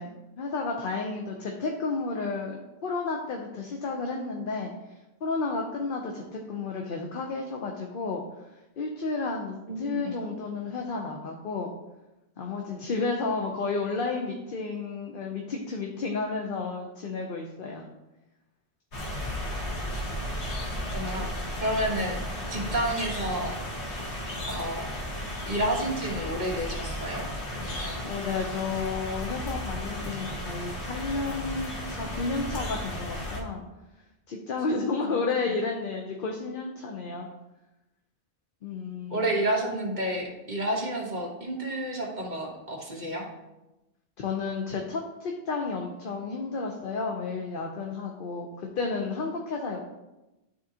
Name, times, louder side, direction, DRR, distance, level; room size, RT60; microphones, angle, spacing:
voice 1, 0.0-8.2 8.8-11.7 12.4-17.9 21.2-21.3 28.0-33.6 34.3-37.3 38.6-39.2 44.2-49.9, left 4 dB, 60° left, 1 dB, 0.8 m, -32 dB
voice 2, 9.7-10.2 20.9-21.3 21.6-22.2 22.5-23.5 24.5-24.9 25.5-27.3 27.5-28.1 35.0-35.2 39.1-43.3, right 1 dB, 45° right, -2 dB, 1.3 m, -30 dB
sound 1, 18.9-33.4, left 1 dB, 85° left, 1.5 m, -34 dB
11.0 x 3.9 x 2.8 m, 0.99 s
omnidirectional pair, 1.1 m